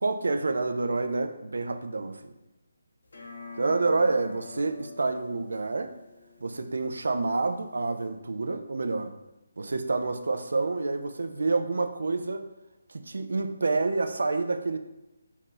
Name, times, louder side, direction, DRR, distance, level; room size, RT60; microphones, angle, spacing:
voice 1, 0.0-2.3 3.6-5.9 6.4-9.1 9.6-12.4 12.9-14.8, right 3 dB, 70° right, 8 dB, 0.3 m, -28 dB
sound 1, 3.1-8.1, left 4 dB, 65° left, 0.6 m, -47 dB
2.7 x 2.5 x 3.7 m, 0.96 s
figure-of-eight pair, 150°, 0 cm